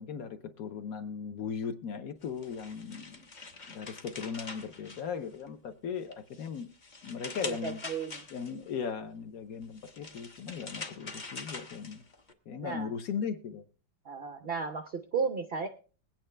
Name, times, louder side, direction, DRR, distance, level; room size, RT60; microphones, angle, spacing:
voice 1, 0.0-3.3 3.7-6.7 7.0-7.8 8.3-12.0 12.5-13.6, left 6 dB, 60° left, 1.0 m, -38 dB
sound 1, 2.2-5.6 6.0-8.7 9.6-12.3, left 3 dB, 35° left, 0.8 m, -44 dB
voice 2, 7.4-8.3 12.6-12.9 14.0-15.7, right 5 dB, 85° right, 0.5 m, -34 dB
21.0 x 9.0 x 3.3 m
omnidirectional pair, 2.1 m